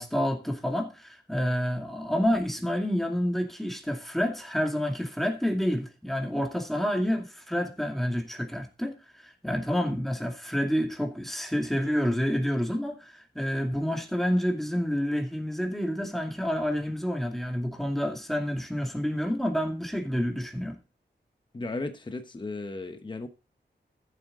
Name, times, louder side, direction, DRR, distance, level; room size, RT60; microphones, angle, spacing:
voice 1, 0.0-20.8, equal, ahead, 2.4 m, -29 dB
voice 2, 21.5-23.3, left 2 dB, 25° left, 0.9 m, -35 dB
13.5 x 7.8 x 3.6 m
wide cardioid pair, 120°, 19 cm